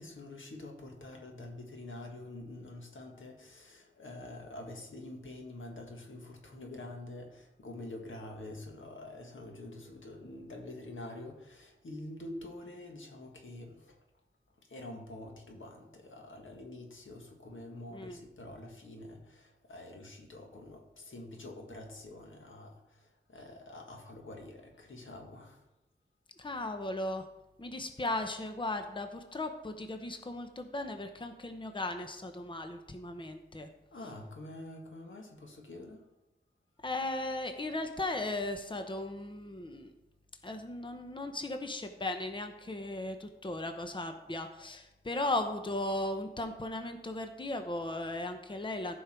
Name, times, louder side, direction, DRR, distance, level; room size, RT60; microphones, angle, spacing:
voice 1, 0.0-14.0 14.6-25.7 33.9-36.1, left 1 dB, 85° left, 2 dB, 1.8 m, -46 dB
voice 2, 26.4-27.2 27.6-33.7 36.8-39.9 40.4-48.9, left 2 dB, 25° left, 6 dB, 0.9 m, -37 dB
14.5 x 5.6 x 4.5 m, 0.96 s
wide cardioid pair, 80°, 20 cm